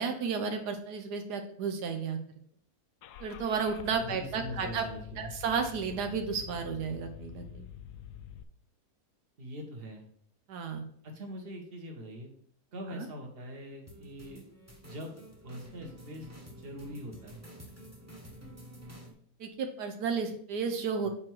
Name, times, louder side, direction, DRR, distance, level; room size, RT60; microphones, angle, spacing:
voice 1, 0.0-2.2 3.2-4.9 5.2-7.7 10.5-10.8 12.9-13.1 19.4-21.1, right 5 dB, 85° right, 5 dB, 1.4 m, -33 dB
Car / Engine starting, 3.0-8.4, left 10 dB, 80° left, 1.1 m, -46 dB
voice 2, 4.0-5.3 9.4-10.0 11.0-12.3 12.7-14.4 14.8-15.2 15.4-17.4 21.0-21.1, equal, 40° right, 1 dB, 1.5 m, -43 dB
sound 1, 13.9-19.1, equal, 10° right, 1.2 m, -50 dB
5.8 x 4.4 x 4.7 m, 0.63 s
omnidirectional pair, 1.7 m